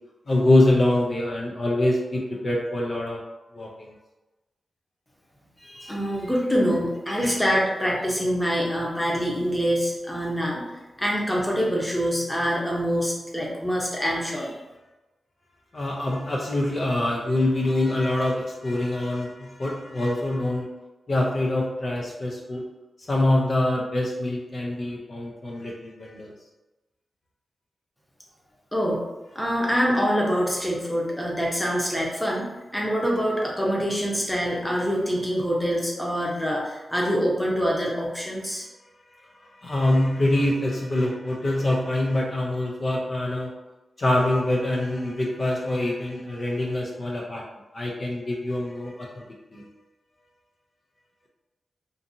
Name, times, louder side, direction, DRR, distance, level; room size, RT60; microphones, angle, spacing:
voice 1, 0.3-3.2 3.5-3.9 7.1-7.4 15.7-20.7 21.1-22.6 23.1-26.3 39.2-43.5 44.0-47.4 47.7-49.2 49.5-49.7, left 1 dB, 50° left, -2 dB, 0.4 m, -25 dB
voice 2, 5.6-10.6 11.0-14.6 28.7-29.0 29.3-32.4 32.7-38.7, equal, 5° left, -3 dB, 0.8 m, -25 dB
2.6 x 2.5 x 2.6 m, 1.1 s
cardioid pair, 70°, 0 cm